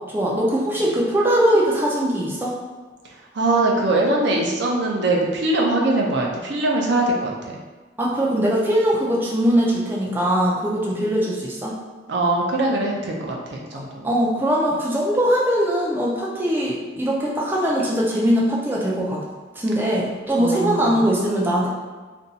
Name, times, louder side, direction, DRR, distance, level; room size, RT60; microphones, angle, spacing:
voice 1, 0.0-2.6 8.0-11.8 14.0-19.2 19.6-21.7, equal, 10° right, -5 dB, 0.4 m, -21 dB
voice 2, 3.3-7.5 10.9-11.1 12.1-14.1 20.4-21.0, right 2 dB, 65° right, -1 dB, 0.5 m, -22 dB
2.6 x 2.3 x 3.9 m, 1.3 s
head